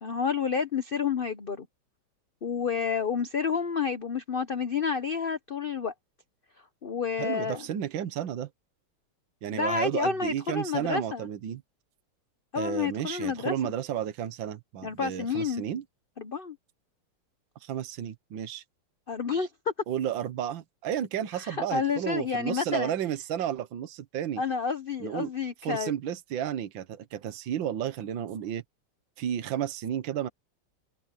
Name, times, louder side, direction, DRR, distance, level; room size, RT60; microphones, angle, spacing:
voice 1, 0.0-1.7 2.4-5.9 6.8-7.6 9.5-11.3 12.5-13.7 14.8-15.6 16.2-16.6 19.1-19.5 21.4-22.9 24.4-25.9, left 6 dB, 55° left, 0.6 m, -30 dB
voice 2, 7.2-8.5 9.4-11.6 12.6-15.8 17.6-18.6 19.9-24.4 25.0-25.3 25.6-28.6 29.2-30.3, right 10 dB, 75° right, 1.8 m, -32 dB
omnidirectional pair, 2.2 m